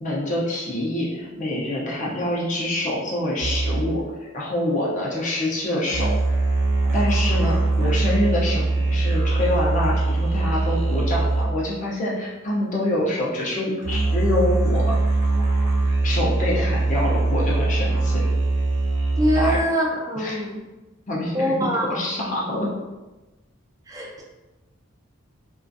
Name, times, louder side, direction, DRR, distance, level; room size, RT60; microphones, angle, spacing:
voice 1, 0.0-4.0 4.3-6.1 6.9-15.0 16.0-18.2 19.3-19.6 20.2-20.4 21.1-21.5 21.8-22.7, left 1 dB, 35° left, -5 dB, 0.5 m, -26 dB
sound 1, 3.4-11.8 13.8-19.6, right 2 dB, 75° right, 0.6 m, -22 dB
voice 2, 19.2-20.6 21.3-22.0 23.9-24.2, equal, 15° right, -1 dB, 0.3 m, -24 dB
2.4 x 2.2 x 2.5 m, 1.1 s
head